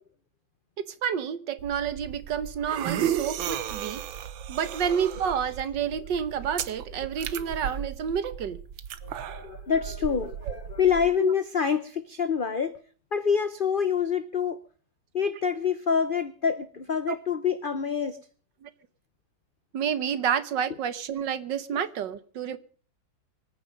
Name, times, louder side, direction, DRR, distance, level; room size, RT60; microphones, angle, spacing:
voice 1, 0.8-4.0 4.5-8.6 10.5-10.6 11.2-11.3 17.1-17.2 18.6-18.7 19.7-22.6, right 8 dB, 70° right, 1.7 m, -29 dB
sound 1, 1.6-11.1, right 10 dB, 90° right, 1.7 m, -35 dB
voice 2, 9.0-12.7 13.1-14.6 15.1-18.2, left 7 dB, 50° left, 0.6 m, -26 dB
25.0 x 9.6 x 5.3 m
omnidirectional pair, 2.1 m